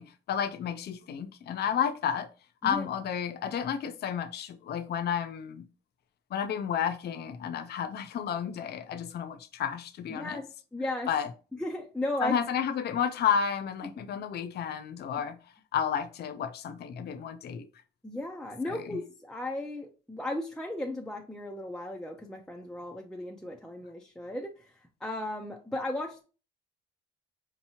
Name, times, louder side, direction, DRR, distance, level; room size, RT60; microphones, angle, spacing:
voice 1, 0.0-2.3 2.6-5.6 6.3-10.4 11.1-11.3 12.2-15.4 15.7-17.7 18.6-19.0, left 8 dB, 55° left, 0.5 m, -31 dB
voice 2, 10.1-10.5 10.7-11.1 11.6-12.4 18.0-24.5 25.0-26.2, left 1 dB, 5° left, 0.5 m, -35 dB
4.5 x 2.9 x 2.8 m
cardioid pair, 90°, 20 cm